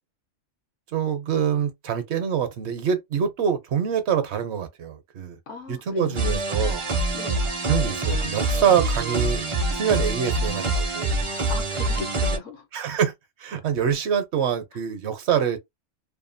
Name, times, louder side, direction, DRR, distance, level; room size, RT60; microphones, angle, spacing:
voice 1, 0.9-5.4 5.7-6.8 7.7-9.5 9.7-11.1 12.7-13.1 13.4-15.6, right 8 dB, 65° right, 0.8 m, -25 dB
voice 2, 5.5-6.4 7.1-7.4 11.5-12.7, left 4 dB, 70° left, 1.2 m, -37 dB
sound 1, 6.2-12.4, right 2 dB, 40° right, 0.5 m, -25 dB
2.7 x 2.2 x 2.5 m
omnidirectional pair, 1.3 m